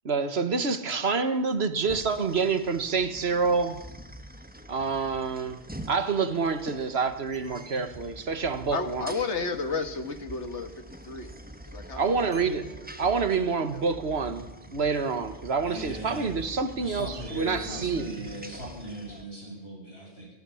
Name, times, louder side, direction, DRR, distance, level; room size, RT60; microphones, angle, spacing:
voice 1, 0.0-3.8 4.7-5.6 5.9-9.1 12.0-12.7 13.0-18.4, right 4 dB, 65° right, 1.6 m, -27 dB
sound 1, 1.9-19.2, equal, 10° right, 1.2 m, -45 dB
sound 2, 7.3-8.4 9.5-9.8 10.5-10.6 10.9-11.0 11.5-11.6 12.3-14.2 15.1-15.5 16.5-18.7, right 2 dB, 40° right, 2.8 m, -47 dB
voice 2, 8.7-11.4 11.6-12.4 13.4-14.0, left 4 dB, 80° left, 1.9 m, -33 dB
voice 3, 15.6-16.4 16.7-20.3, equal, 65° left, 8.3 m, -39 dB
24.0 x 16.5 x 7.1 m
omnidirectional pair, 1.2 m